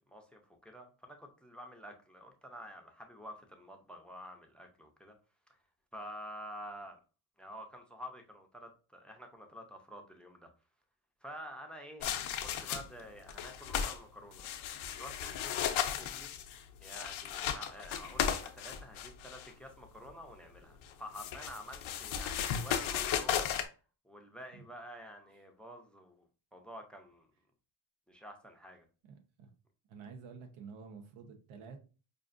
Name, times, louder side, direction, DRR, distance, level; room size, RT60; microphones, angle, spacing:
voice 1, 0.1-5.2 5.9-7.0 7.4-10.5 11.2-14.5 15.0-16.5 16.8-23.7 24.0-27.3 28.1-28.9, equal, ahead, 0.4 m, -49 dB
sound 1, 12.0-13.0 13.3-14.0 14.3-19.5 20.8-23.7, left 9 dB, 75° left, 0.6 m, -35 dB
voice 2, 29.0-29.5 29.9-31.8, right 5 dB, 85° right, 0.9 m, -50 dB
5.2 x 2.4 x 2.5 m
cardioid pair, 135°, 47 cm